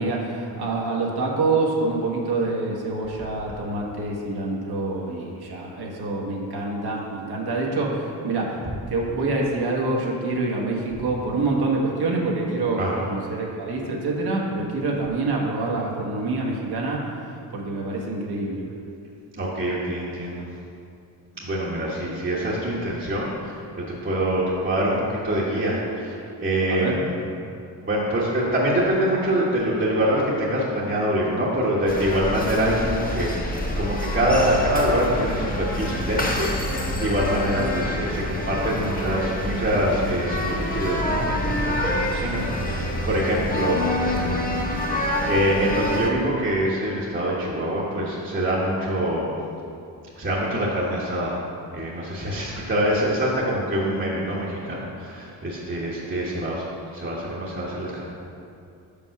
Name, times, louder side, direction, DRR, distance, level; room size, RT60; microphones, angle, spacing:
voice 1, 0.0-8.6 8.9-18.7 26.7-27.0 37.6-37.9, right 2 dB, 60° right, -2 dB, 1.5 m, -26 dB
voice 2, 12.8-13.1 19.4-20.5 21.4-27.1 27.8-44.5 44.9-49.4 50.2-51.4 51.7-56.6 56.9-58.1, equal, 25° right, -7 dB, 1.4 m, -25 dB
sound 1, 31.9-46.1, left 1 dB, 20° left, 1.2 m, -27 dB
5.3 x 5.3 x 5.9 m, 2.5 s
supercardioid pair, 65°, 44 cm